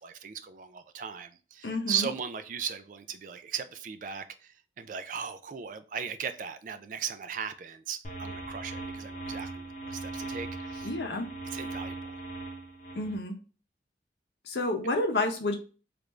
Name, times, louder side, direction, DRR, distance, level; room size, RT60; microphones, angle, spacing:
voice 1, 0.0-10.9 11.5-12.2, right 7 dB, 45° right, 0.3 m, -37 dB
voice 2, 1.6-2.1 10.8-11.3 13.0-13.4 14.5-15.5, left 2 dB, 75° left, 0.7 m, -30 dB
sound 1, 8.0-13.2, right 2 dB, 40° left, 0.8 m, -39 dB
3.4 x 2.5 x 3.1 m
head